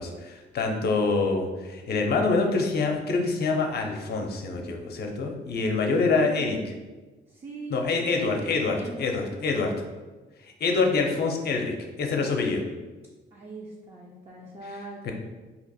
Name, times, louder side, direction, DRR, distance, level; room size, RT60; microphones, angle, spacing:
voice 1, 0.0-6.6 7.7-9.8 10.6-12.6 15.0-15.1, left 3 dB, 55° left, 2 dB, 0.7 m, -26 dB
voice 2, 6.1-6.7 7.3-9.1 13.3-15.1, right 2 dB, 30° right, -3 dB, 0.6 m, -41 dB
2.8 x 2.5 x 4.1 m, 1.2 s
cardioid pair, 90°, 20 cm